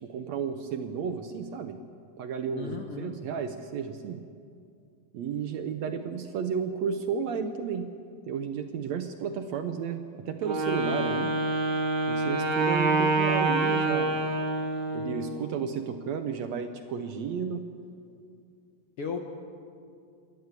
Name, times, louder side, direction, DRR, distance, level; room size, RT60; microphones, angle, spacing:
voice 1, 0.0-1.8 2.2-4.2 5.1-7.9 8.3-10.0 10.2-11.3 12.1-14.2 14.9-17.6, right 6 dB, 70° right, 7 dB, 1.7 m, -32 dB
voice 2, 2.5-3.1 19.0-19.2, left 5 dB, 60° left, 3 dB, 1.6 m, -35 dB
Wind instrument woodwind instrument, 10.4-15.3, right 2 dB, 40° right, 1.8 m, -26 dB
27.0 x 12.5 x 8.2 m, 2.4 s
omnidirectional pair, 4.0 m